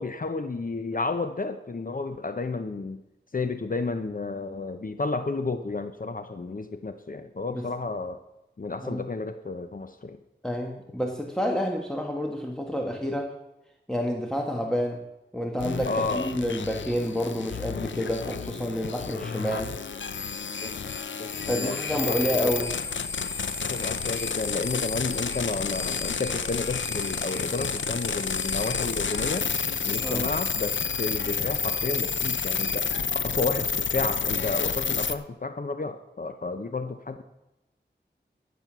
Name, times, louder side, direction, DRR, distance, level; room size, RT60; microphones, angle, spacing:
voice 1, 0.0-3.0 3.3-8.2 8.6-10.2 15.8-16.3 20.6-20.7 21.2-22.5 23.7-29.5 29.9-32.9 33.2-37.2, left 3 dB, 45° left, 9 dB, 0.8 m, -31 dB
voice 2, 10.4-13.3 13.9-15.0 15.3-19.7 21.5-22.7 30.0-30.3, equal, 5° left, 0 dB, 1.5 m, -29 dB
sound 1, 15.6-35.1, left 5 dB, 80° left, 0.7 m, -30 dB
13.5 x 7.3 x 6.1 m, 0.94 s
wide cardioid pair, 60°, 19 cm